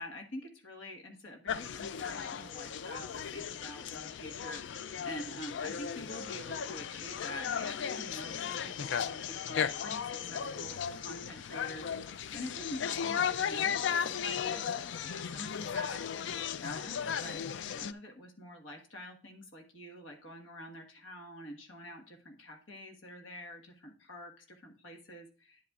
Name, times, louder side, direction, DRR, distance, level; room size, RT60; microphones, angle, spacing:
voice 1, 0.0-14.6 15.0-17.4 17.8-25.7, left 1 dB, 90° left, 3 dB, 1.4 m, -46 dB
sound 1, 1.5-17.9, left 8 dB, 70° left, 0.4 m, -36 dB
9.9 x 8.2 x 2.4 m, 0.38 s
head